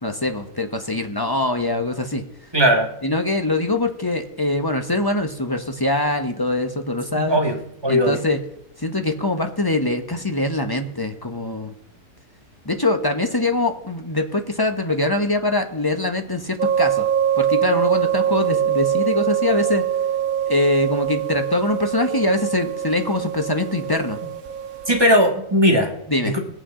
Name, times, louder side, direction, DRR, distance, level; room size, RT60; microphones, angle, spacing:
voice 1, 0.0-2.2 3.0-7.4 7.9-8.4 8.8-11.7 12.6-17.1 17.4-19.8 20.5-24.2 26.1-26.4, left 2 dB, 20° left, 6 dB, 0.7 m, -23 dB
voice 2, 2.5-2.9 7.1-8.2 24.9-25.9 26.2-26.4, equal, 15° right, 1 dB, 1.6 m, -18 dB
sound 1, 16.6-25.1, right 9 dB, 65° right, 1.4 m, -23 dB
21.5 x 8.7 x 3.8 m, 0.76 s
omnidirectional pair, 1.6 m